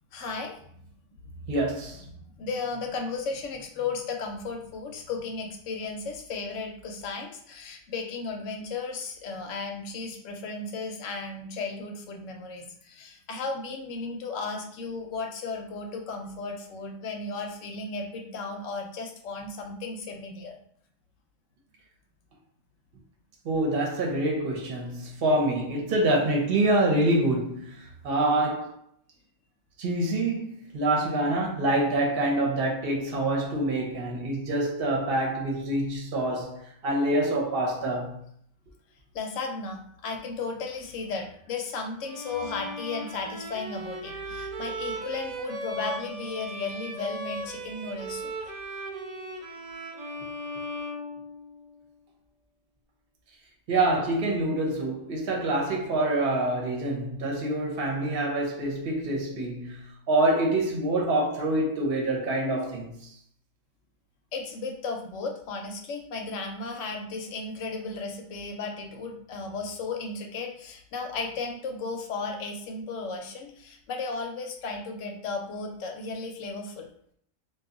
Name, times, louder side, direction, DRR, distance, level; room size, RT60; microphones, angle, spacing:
voice 1, 0.1-0.8 1.3-1.4 2.1-20.5 39.1-48.3 49.6-49.8 64.3-76.9, left 4 dB, 70° left, 0.9 m, -35 dB
voice 2, 1.5-2.0 23.4-28.7 29.8-36.6 36.8-38.2 53.7-62.9, right 1 dB, 50° right, 0.9 m, -26 dB
Bowed string instrument, 42.0-51.8, right 1 dB, 85° right, 0.3 m, -37 dB
2.6 x 2.3 x 3.7 m
omnidirectional pair, 1.4 m